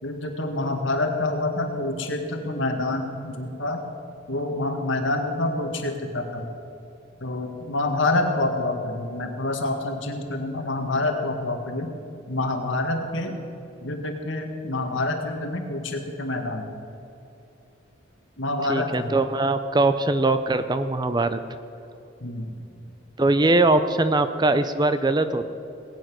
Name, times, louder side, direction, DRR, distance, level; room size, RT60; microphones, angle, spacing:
voice 1, 0.0-3.8 4.3-6.5 7.2-11.9 12.3-13.4 13.8-16.8 18.4-19.1 22.2-22.5, left 2 dB, 70° left, 4 dB, 1.8 m, -27 dB
voice 2, 18.7-21.4 23.2-25.5, right 2 dB, 20° right, 10 dB, 0.5 m, -21 dB
19.5 x 9.2 x 6.2 m, 2.8 s
head